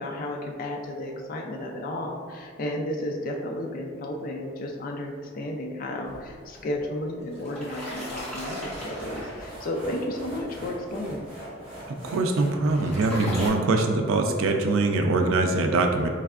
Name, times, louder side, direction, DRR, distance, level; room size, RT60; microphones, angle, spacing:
voice 1, 0.0-11.3, left 1 dB, 45° left, 1 dB, 0.3 m, -33 dB
sound 1, 6.0-13.0, right 1 dB, 25° right, 1.4 m, -43 dB
sound 2, 7.2-9.7 12.3-13.5, equal, 5° left, 1.2 m, -36 dB
voice 2, 12.0-16.1, right 3 dB, 85° right, 4 dB, 0.4 m, -23 dB
4.2 x 3.2 x 2.3 m, 2.1 s
head